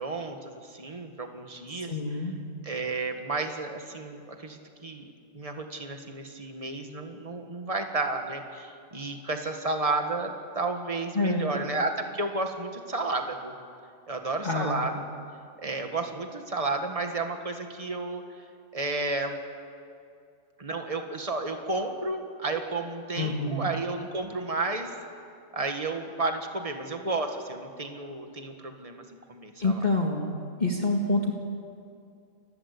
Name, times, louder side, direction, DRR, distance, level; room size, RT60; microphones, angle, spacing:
voice 1, 0.0-1.9 2.6-5.1 5.3-13.5 14.1-14.9 15.6-18.2 18.7-19.4 20.6-24.9 25.5-29.8, right 3 dB, 25° right, 5 dB, 1.8 m, -32 dB
voice 2, 1.7-2.3 11.1-11.5 14.4-14.9 23.2-23.7 29.6-30.3 30.6-31.3, left 2 dB, 35° left, 0 dB, 2.0 m, -27 dB
29.5 x 15.0 x 8.5 m, 2.4 s
omnidirectional pair, 1.4 m